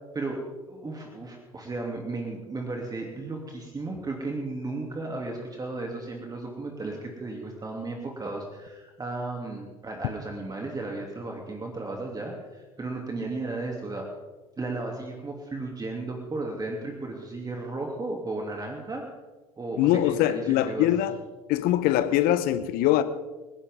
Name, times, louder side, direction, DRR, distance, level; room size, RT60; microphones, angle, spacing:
voice 1, 0.7-14.1 14.6-19.0 19.6-20.9, right 2 dB, 20° right, 1 dB, 2.9 m, -34 dB
voice 2, 19.8-21.2 21.5-23.0, left 13 dB, 55° left, 13 dB, 1.1 m, -22 dB
27.0 x 11.0 x 3.7 m, 1.2 s
hypercardioid pair, 70°, 18 cm